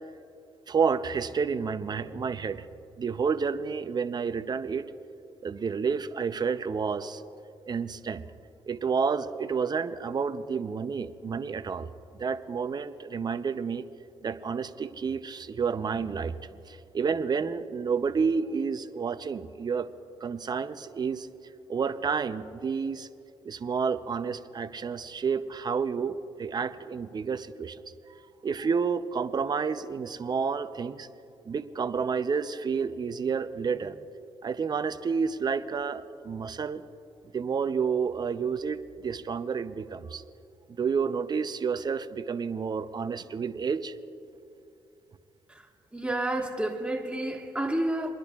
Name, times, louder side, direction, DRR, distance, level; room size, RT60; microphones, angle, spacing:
voice 1, 0.7-2.7 3.0-4.9 5.4-7.2 7.7-8.2 8.7-11.9 12.2-13.8 14.2-19.9 20.2-21.3 21.7-23.1 23.4-27.8 28.1-28.2 28.4-31.1 31.5-34.0 34.4-36.8 37.3-40.2 40.7-43.9, right 5 dB, 40° right, 12 dB, 0.6 m, -30 dB
voice 2, 45.9-48.1, right 1 dB, 10° right, 2 dB, 1.5 m, -30 dB
29.5 x 10.5 x 2.4 m, 2.6 s
supercardioid pair, 65°, 11 cm